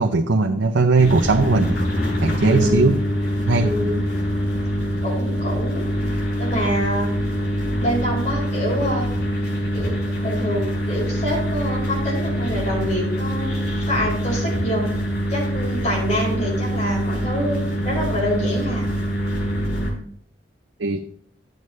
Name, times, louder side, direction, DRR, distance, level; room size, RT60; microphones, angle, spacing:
voice 1, 0.0-1.8 2.2-3.0 3.5-3.7 20.8-21.0, right 3 dB, 85° right, 4 dB, 0.7 m, -18 dB
sound 1, 1.0-19.9, equal, 60° left, 4.5 m, -24 dB
voice 2, 2.4-2.9 3.6-4.0 5.0-5.8 6.4-7.1 7.8-9.1 9.7-14.9 15.3-18.9, equal, 40° left, -4 dB, 5.1 m, -26 dB
12.0 x 8.0 x 3.3 m, 0.62 s
head